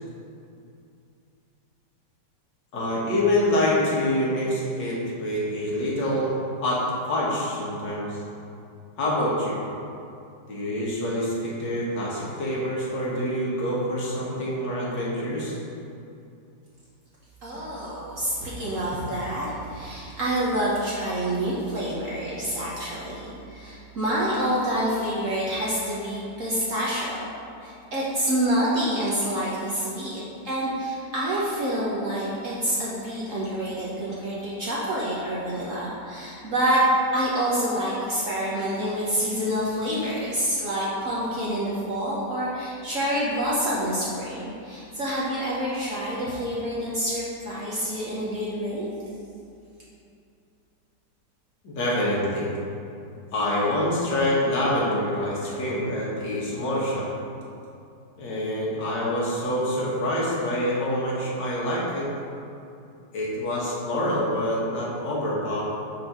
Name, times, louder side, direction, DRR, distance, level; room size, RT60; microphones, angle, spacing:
voice 1, 2.7-6.4 6.6-6.8 7.1-8.2 9.0-9.6 10.5-15.6 51.6-52.5 53.3-57.1 58.2-62.1 63.1-65.6, left 1 dB, 80° left, -6 dB, 2.0 m, -26 dB
voice 2, 17.4-27.2 27.6-36.8 37.1-48.9, equal, 55° right, -7 dB, 1.2 m, -27 dB
5.2 x 4.0 x 5.9 m, 2.6 s
omnidirectional pair, 1.9 m